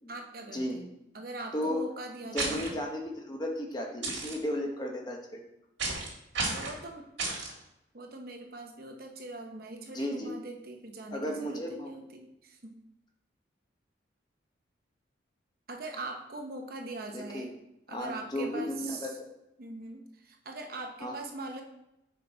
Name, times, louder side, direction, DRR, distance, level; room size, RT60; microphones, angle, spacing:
voice 1, 0.1-2.8 6.4-7.1 7.9-12.8 15.7-17.5 17.9-19.2 19.6-21.6, right 2 dB, 50° right, 3 dB, 0.9 m, -42 dB
voice 2, 1.5-1.9 2.3-3.0 3.3-5.4 9.9-10.4 11.1-11.9 17.1-17.5 17.9-19.1 21.0-21.2, left 1 dB, 20° left, 1 dB, 0.9 m, -34 dB
sound 1, 2.4-2.7 4.0-4.3 5.8-6.1 6.3-6.7 7.2-7.5, right 3 dB, 75° right, 1.8 m, -32 dB
6.0 x 5.0 x 3.9 m, 0.87 s
head